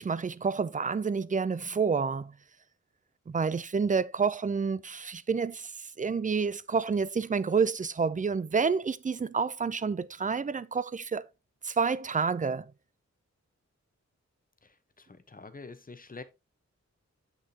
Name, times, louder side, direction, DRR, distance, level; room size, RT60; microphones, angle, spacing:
voice 1, 0.0-2.3 3.3-5.7 6.0-11.2 11.6-12.6, right 5 dB, 30° right, 0.4 m, -29 dB
voice 2, 14.6-16.2, left 3 dB, 30° left, 0.9 m, -47 dB
7.9 x 6.6 x 2.8 m
wide cardioid pair, 120°, 29 cm